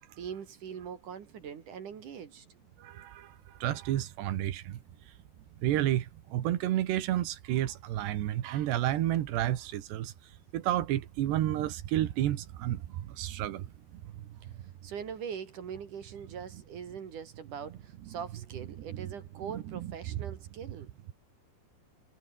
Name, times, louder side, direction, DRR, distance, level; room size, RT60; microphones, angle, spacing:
voice 1, 0.2-2.5 14.4-14.5 14.8-20.9, right 7 dB, 55° right, 3.4 m, -42 dB
voice 2, 2.8-3.3 3.6-4.7 5.6-6.1 6.3-10.1 10.5-13.7 18.9-19.1 19.5-19.9, right 13 dB, 90° right, 3.8 m, -30 dB
sound 1, 8.1-14.9, left 2 dB, 25° left, 6.4 m, -62 dB
omnidirectional pair, 4.7 m